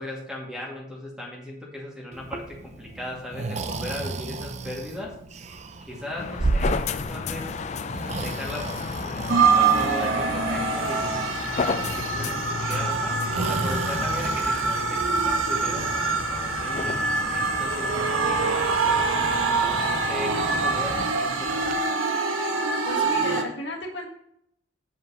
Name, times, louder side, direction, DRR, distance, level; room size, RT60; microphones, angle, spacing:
voice 1, 0.0-5.6 5.8-7.5 8.1-18.7 19.4-21.9, left 1 dB, 5° right, -3 dB, 2.0 m, -38 dB
Breathing, 2.1-21.8, right 3 dB, 35° right, 0.4 m, -35 dB
sound 1, 6.2-21.1, left 4 dB, 35° left, 0.3 m, -33 dB
sound 2, 9.3-23.4, right 4 dB, 85° right, 1.1 m, -25 dB
voice 2, 22.8-24.1, left 1 dB, 60° left, 0 dB, 1.5 m, -33 dB
7.3 x 5.4 x 5.7 m, 0.73 s
head